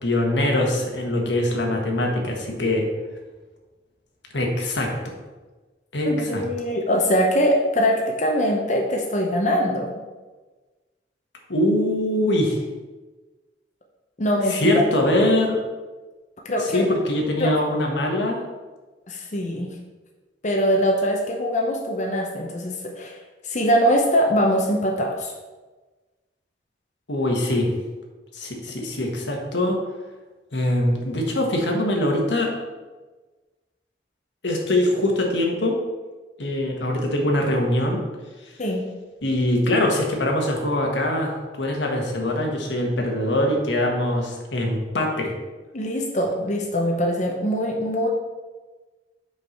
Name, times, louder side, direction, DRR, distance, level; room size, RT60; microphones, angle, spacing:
voice 1, 0.0-2.8 4.3-4.9 5.9-6.4 11.5-12.6 14.5-15.6 16.7-18.4 27.1-27.7 28.3-29.8 30.5-32.5 34.4-35.8 36.4-38.0 39.2-45.3, left 1 dB, 90° left, 0 dB, 1.4 m, -23 dB
voice 2, 6.0-9.9 14.2-14.8 16.5-16.9 17.4-17.5 19.1-19.7 20.4-23.2 23.4-25.3 38.6-38.8 45.7-48.1, equal, 40° left, 0 dB, 0.8 m, -22 dB
5.3 x 4.8 x 5.8 m, 1.3 s
head